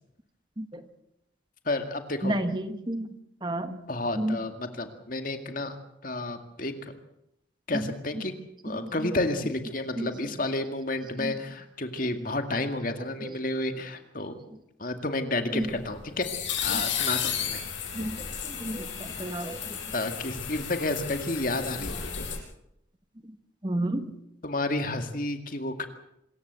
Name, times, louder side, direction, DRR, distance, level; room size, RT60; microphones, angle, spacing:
voice 1, 1.7-2.4 3.9-5.8 6.0-6.9 7.7-8.3 8.6-14.3 14.8-16.3 16.6-17.6 19.9-22.2 24.4-25.9, left 2 dB, 45° left, 7 dB, 2.2 m, -31 dB
voice 2, 2.2-3.1 3.4-3.8 4.2-4.4 7.7-7.8 8.8-9.1 10.0-10.1 11.2-11.3 13.2-13.3 15.5-15.7 16.7-16.8 17.9-19.8 23.6-24.1, right 1 dB, 25° right, 9 dB, 1.2 m, -31 dB
sound 1, 15.6-22.4, left 8 dB, 75° left, 6.0 m, -33 dB
26.0 x 14.5 x 8.1 m, 0.80 s
head